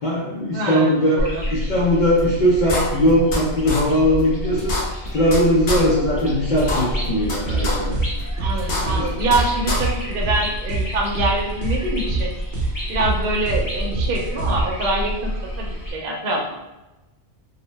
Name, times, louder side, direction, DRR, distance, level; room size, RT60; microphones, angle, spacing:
voice 1, 0.0-1.2 1.5-4.7 5.1-8.0 8.8-9.0, equal, 55° left, -5 dB, 0.6 m, -19 dB
voice 2, 0.5-0.9 1.2-1.4 8.4-12.3 12.9-16.5, right 2 dB, 60° right, 1 dB, 0.7 m, -25 dB
sound 1, 1.2-15.9, equal, 20° left, 0.8 m, -29 dB
sound 2, 2.2-2.3 2.7-3.4 3.7-3.8 4.2-4.3 4.6-5.4 5.7-5.8 6.2-6.3 6.6-7.4 7.6-7.7 8.2-8.3 8.6-9.4 9.7-9.8, left 2 dB, 80° left, 1.0 m, -24 dB
sound 3, 7.2-14.6, right 3 dB, 85° right, 0.9 m, -26 dB
2.6 x 2.1 x 3.0 m, 1.0 s
omnidirectional pair, 1.2 m